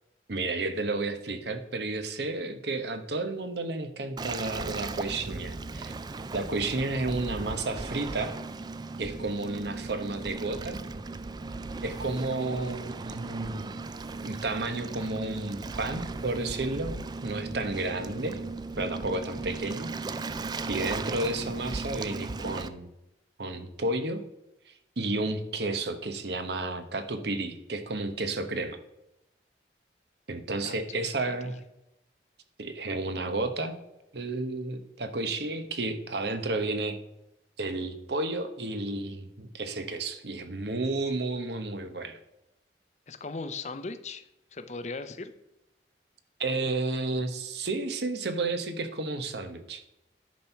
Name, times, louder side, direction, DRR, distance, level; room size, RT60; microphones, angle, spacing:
voice 1, 0.3-5.9 6.3-8.3 9.0-10.8 11.8-13.8 14.2-18.4 18.8-20.3 20.7-22.9 23.4-24.2 24.7-28.8 30.3-31.6 32.6-33.8 34.1-37.0 37.6-42.2 46.4-49.8, right 2 dB, 70° right, 9 dB, 0.9 m, -32 dB
Waves surf, 4.2-22.7, right 3 dB, 25° right, 0.3 m, -37 dB
voice 2, 30.6-31.0 31.3-31.5 43.1-44.2 44.5-45.3, left 3 dB, 40° left, 10 dB, 0.6 m, -38 dB
10.5 x 4.4 x 5.7 m, 0.90 s
head